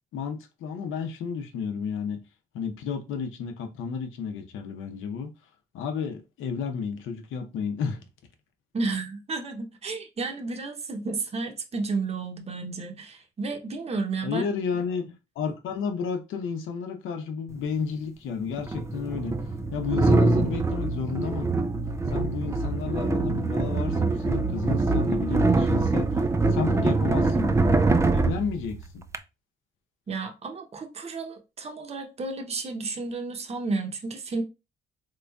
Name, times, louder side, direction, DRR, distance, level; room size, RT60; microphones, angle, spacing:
voice 1, 0.1-2.2 2.5-5.3 5.7-8.0 14.2-19.3 19.7-21.5 22.1-26.1 26.5-27.8 28.1-29.0, left 6 dB, 85° left, 0.8 m, -32 dB
voice 2, 8.7-14.4 30.1-34.4, right 3 dB, 30° right, 0.7 m, -32 dB
sound 1, 17.5-17.6 18.6-29.2, right 3 dB, 15° right, 0.3 m, -24 dB
3.8 x 3.1 x 2.3 m
cardioid pair, 90°, 20 cm